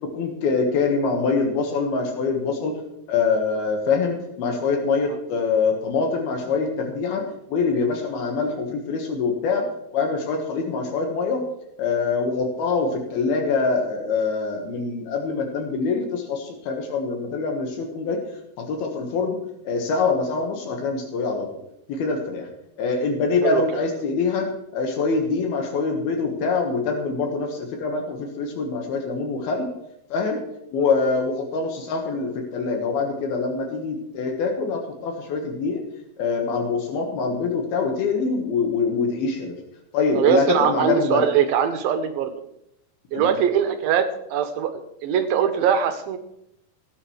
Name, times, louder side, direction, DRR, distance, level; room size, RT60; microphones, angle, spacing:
voice 1, 0.0-2.7 3.1-9.6 9.9-11.4 11.8-18.2 18.6-19.4 19.6-21.5 21.9-22.5 22.8-29.7 30.1-30.4 30.7-35.8 36.2-39.6 39.9-41.2 43.1-43.3, left 4 dB, 80° left, 2 dB, 3.3 m, -24 dB
voice 2, 40.2-42.3 43.1-46.2, right 8 dB, 80° right, 8 dB, 2.4 m, -22 dB
17.0 x 9.7 x 3.2 m, 0.80 s
omnidirectional pair, 4.4 m